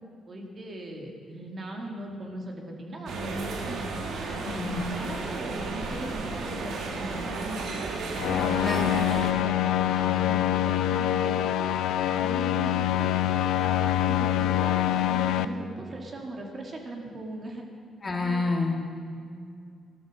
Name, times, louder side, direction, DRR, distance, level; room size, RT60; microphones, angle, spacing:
voice 1, 0.3-4.2 4.6-7.6 8.1-11.7 12.1-13.1 13.6-17.6 18.2-18.5, right 1 dB, 40° right, 1 dB, 2.5 m, -39 dB
sound 1, 3.1-9.3, right 3 dB, 75° right, 1.8 m, -34 dB
voice 2, 4.4-4.8 8.3-8.8 18.0-18.7, left 3 dB, 30° left, 1 dB, 2.2 m, -28 dB
sound 2, 8.2-15.4, left 12 dB, 85° left, 0.6 m, -25 dB
14.5 x 12.0 x 6.3 m, 2.3 s
cardioid pair, 90°, 0 cm